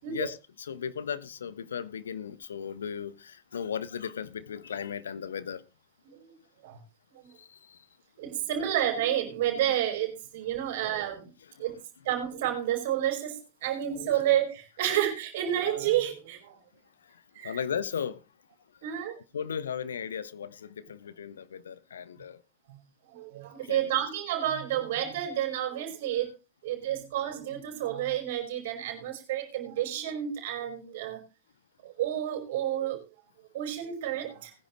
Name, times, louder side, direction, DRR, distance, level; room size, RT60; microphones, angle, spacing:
voice 1, 0.1-5.6 7.4-7.8 11.5-11.6 17.4-18.2 18.8-18.9 19.3-22.4 23.6-23.9, left 7 dB, 65° left, 1.1 m, -36 dB
voice 2, 8.2-11.3 11.6-11.8 12.0-16.6 17.3-17.6 18.8-19.2 23.1-26.4 26.6-31.2 31.8-33.0 33.5-34.5, right 11 dB, 55° right, 5.0 m, -30 dB
20.0 x 10.5 x 3.1 m
figure-of-eight pair, 90°, 0 cm